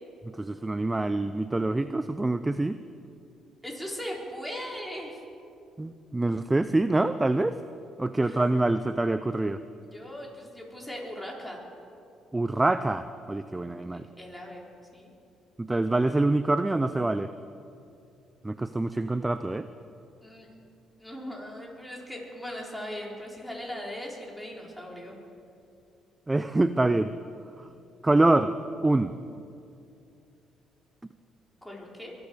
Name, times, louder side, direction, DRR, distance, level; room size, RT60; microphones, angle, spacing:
voice 1, 0.2-2.8 5.8-7.6 8.0-9.6 12.3-14.1 15.6-17.3 18.4-19.7 26.3-27.1 27.6-27.7 28.0-28.5 28.8-29.1, right 2 dB, 15° right, 12 dB, 0.5 m, -25 dB
voice 2, 3.6-5.2 8.2-8.7 9.9-11.6 13.9-14.6 14.9-15.1 20.2-20.5 21.0-25.2 31.6-32.2, equal, 5° left, -2 dB, 4.3 m, -39 dB
23.0 x 8.4 x 6.8 m, 2.6 s
supercardioid pair, 70°, 0 cm